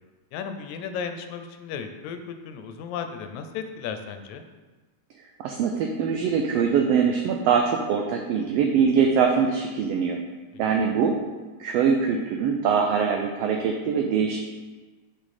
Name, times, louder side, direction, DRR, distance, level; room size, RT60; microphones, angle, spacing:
voice 1, 0.3-4.4 10.8-11.0, left 6 dB, 80° left, 7 dB, 1.9 m, -35 dB
voice 2, 5.4-10.2 10.6-11.2 11.6-14.4, right 6 dB, 90° right, 3 dB, 1.4 m, -23 dB
6.3 x 5.0 x 4.2 m, 1.3 s
omnidirectional pair, 3.3 m